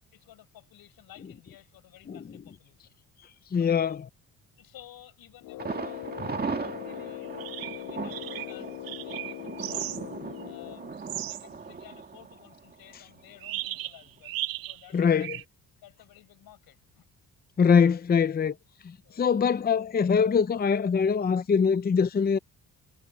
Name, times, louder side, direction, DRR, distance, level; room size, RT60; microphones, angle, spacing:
voice 1, 0.1-3.0 3.6-4.0 4.6-10.8 11.1-15.3 15.8-17.1 19.0-19.4, left 13 dB, 85° left, 6.5 m, -54 dB
voice 2, 3.2-4.1 7.9-8.0 14.9-15.4 17.6-18.6 18.8-22.4, left 6 dB, 25° left, 0.7 m, -23 dB
Brass instrument, 5.4-11.0, left 16 dB, 65° left, 0.5 m, -41 dB
Thunder, 5.6-13.4 13.7-13.8 14.2-14.3, right 5 dB, 25° right, 1.9 m, -38 dB
sound 1, 7.2-7.8 8.1-10.0 10.4-10.5 11.0-11.4 13.4-14.9 15.2-15.4, right 15 dB, 75° right, 0.7 m, -36 dB
cardioid pair, 120°, 35 cm